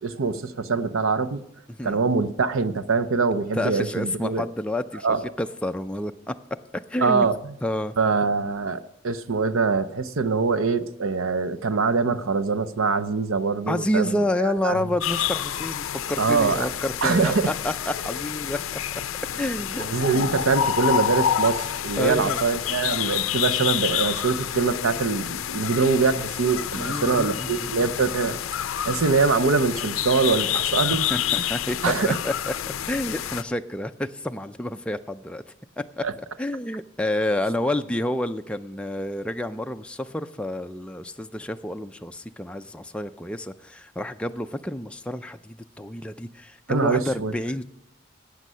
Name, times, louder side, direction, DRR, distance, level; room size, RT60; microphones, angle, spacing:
voice 1, 0.0-1.4 1.8-4.4 5.0-5.2 7.0-7.5 8.0-14.8 16.2-16.7 17.0-17.5 19.8-28.4 28.8-31.1 31.4-31.5 31.8-32.2 36.0-36.1 46.7-47.3, right 4 dB, 75° right, 13 dB, 0.7 m, -23 dB
voice 2, 1.7-2.0 3.5-5.1 5.4-6.3 6.9-7.3 7.6-8.0 13.7-18.8 19.3-19.9 22.0-22.4 26.8-27.7 30.5-30.6 31.1-31.9 32.2-32.5 32.9-35.4 35.8-36.1 36.4-47.6, left 1 dB, 5° left, 6 dB, 0.3 m, -29 dB
sound 1, 15.0-33.4, left 10 dB, 70° left, 0.4 m, -28 dB
12.5 x 8.5 x 5.5 m, 0.81 s
head